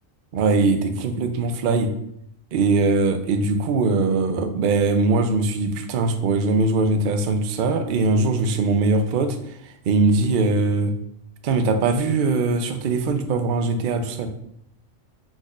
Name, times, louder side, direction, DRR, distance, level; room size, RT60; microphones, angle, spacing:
voice 1, 0.3-1.9 2.5-9.4 9.6-10.9 11.4-14.3, right 3 dB, 60° right, 7 dB, 0.5 m, -21 dB
4.8 x 4.2 x 2.4 m, 0.74 s
omnidirectional pair, 1.4 m